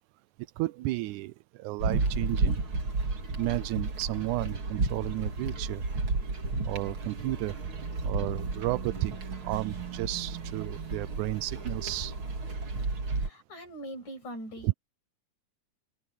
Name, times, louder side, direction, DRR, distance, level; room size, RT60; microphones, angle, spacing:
voice 1, 0.6-2.6 3.4-5.8 6.7-7.6 8.0-12.2 14.6-14.7, right 19 dB, 85° right, 2.0 m, -32 dB
sound 1, 1.8-13.3, right 3 dB, 40° right, 3.4 m, -32 dB
voice 2, 13.2-14.7, equal, 70° left, 7.9 m, -41 dB
open air
omnidirectional pair, 3.6 m